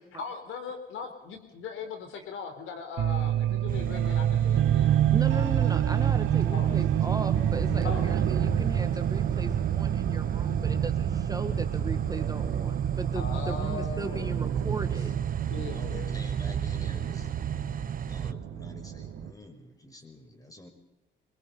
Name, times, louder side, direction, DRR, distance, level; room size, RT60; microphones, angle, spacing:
voice 1, 0.0-5.3 6.5-6.7 7.8-8.2 13.1-14.3 15.5-16.1, left 5 dB, 85° left, 6 dB, 4.3 m, -39 dB
sound 1, 3.0-19.3, right 10 dB, 80° right, 1.6 m, -28 dB
sound 2, 3.7-18.3, right 8 dB, 45° right, 0.9 m, -33 dB
voice 2, 5.1-15.1, right 2 dB, 20° right, 8 dB, 1.6 m, -37 dB
voice 3, 15.7-17.3 18.1-20.7, left 2 dB, 15° left, 5 dB, 5.7 m, -48 dB
24.5 x 23.0 x 5.5 m, 0.97 s
cardioid pair, 90°, 20 cm